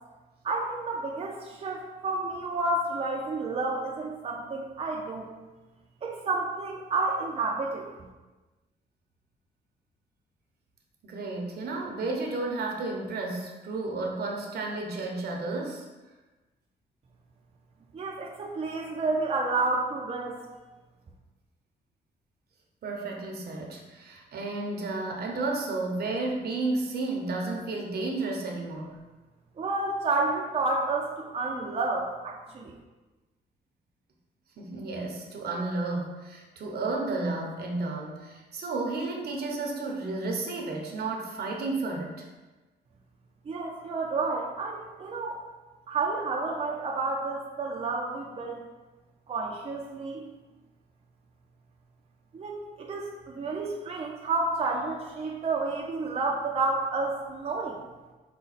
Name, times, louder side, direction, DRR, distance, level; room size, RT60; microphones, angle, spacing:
voice 1, 0.4-5.3 6.0-7.9 17.9-20.4 29.6-32.7 43.5-45.4 45.9-48.6 49.3-50.3 52.3-57.8, right 3 dB, 35° right, -1 dB, 0.5 m, -30 dB
voice 2, 11.0-15.9 22.8-29.0 34.6-42.3, right 3 dB, 65° right, 0 dB, 0.8 m, -32 dB
5.0 x 2.2 x 4.1 m, 1.2 s
cardioid pair, 100°, 18 cm